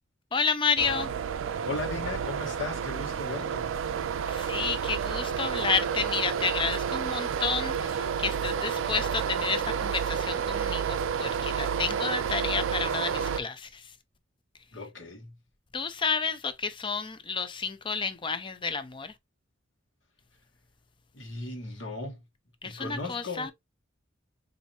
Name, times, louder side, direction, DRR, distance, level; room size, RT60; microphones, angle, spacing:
voice 1, 0.3-1.1 4.0-13.8 15.7-19.1 22.6-23.5, left 5 dB, 25° left, 0.5 m, -31 dB
sound 1, 0.8-13.4, right 7 dB, 80° right, 0.4 m, -30 dB
voice 2, 1.6-3.7 14.7-15.3 21.1-22.2 22.6-23.5, left 2 dB, 70° left, 1.3 m, -36 dB
4.2 x 2.7 x 2.7 m
head